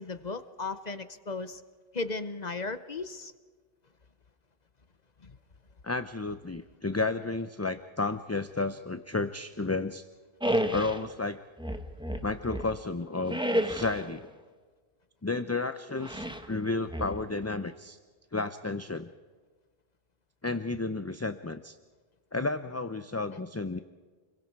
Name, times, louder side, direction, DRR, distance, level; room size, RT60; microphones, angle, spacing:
voice 1, 0.0-1.6 1.9-3.3 23.3-23.4, left 3 dB, 45° left, 12 dB, 0.9 m, -36 dB
voice 2, 5.8-10.1 10.7-11.4 12.2-14.3 15.2-18.0 18.3-19.1 20.4-21.8 22.3-23.8, left 3 dB, 20° left, 10 dB, 0.5 m, -32 dB
Hippo Grunts Roar, 10.4-11.0 11.6-12.8 13.3-14.1 16.0-16.5 16.9-17.6, equal, 5° right, 1.2 m, -31 dB
29.5 x 22.5 x 4.7 m, 1.4 s
omnidirectional pair, 1.0 m